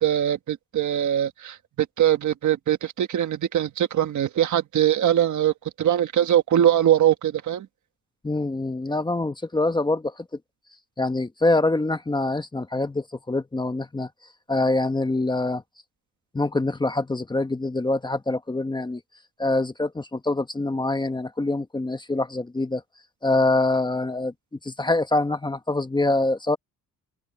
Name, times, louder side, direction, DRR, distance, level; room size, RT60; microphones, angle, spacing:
voice 1, 0.0-7.7, right 11 dB, 60° right, 1.5 m, -22 dB
voice 2, 8.2-10.3 11.0-14.1 14.5-15.6 16.3-19.0 19.4-22.8 23.2-26.6, left 2 dB, 15° left, 1.1 m, -25 dB
open air
cardioid pair, 125°, 34 cm